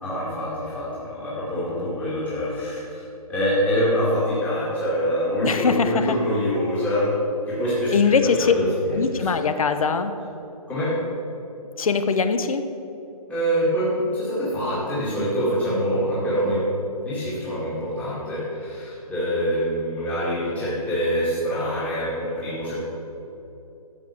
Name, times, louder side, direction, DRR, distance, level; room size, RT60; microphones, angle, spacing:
voice 1, 0.0-3.0 3.3-7.1 7.5-9.0 10.7-10.9 13.3-16.6 17.0-22.8, equal, 5° left, -10 dB, 2.3 m, -25 dB
voice 2, 5.4-6.2 7.9-8.5 8.9-10.1 11.8-12.6, left 5 dB, 65° left, 9 dB, 1.1 m, -21 dB
12.5 x 7.7 x 7.0 m, 3.0 s
hypercardioid pair, 155°, 20 cm